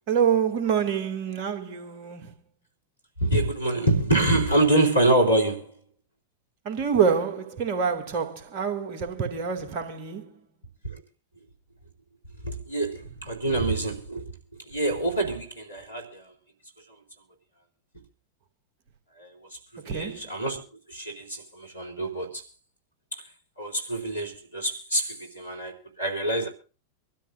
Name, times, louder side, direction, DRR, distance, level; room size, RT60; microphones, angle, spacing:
voice 1, 0.1-2.3 6.6-10.4 19.8-20.2, right 7 dB, 45° right, 2.2 m, -26 dB
voice 2, 3.2-5.8 10.8-11.0 12.4-14.3 14.7-16.3 19.2-19.6 19.8-20.6 20.9-22.5 23.1-23.2 23.6-26.5, right 1 dB, 85° left, 3.1 m, -26 dB
25.5 x 13.0 x 2.5 m
figure-of-eight pair, 90°, 0 cm